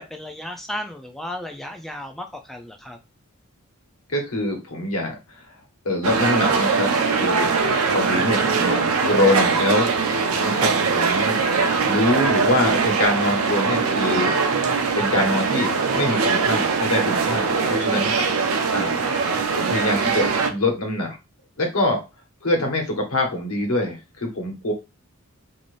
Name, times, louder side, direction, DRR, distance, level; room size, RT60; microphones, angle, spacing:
voice 1, 0.0-3.0 17.6-17.8, left 1 dB, ahead, 3 dB, 0.3 m, -34 dB
voice 2, 4.1-5.4 5.8-9.9 10.4-14.3 15.0-18.1 18.7-18.9 19.5-21.2 21.6-22.0 22.4-24.7, left 1 dB, 80° left, 2 dB, 1.0 m, -24 dB
sound 1, 6.0-20.5, right 4 dB, 75° right, 0.5 m, -21 dB
3.3 x 2.7 x 2.5 m, 0.27 s
head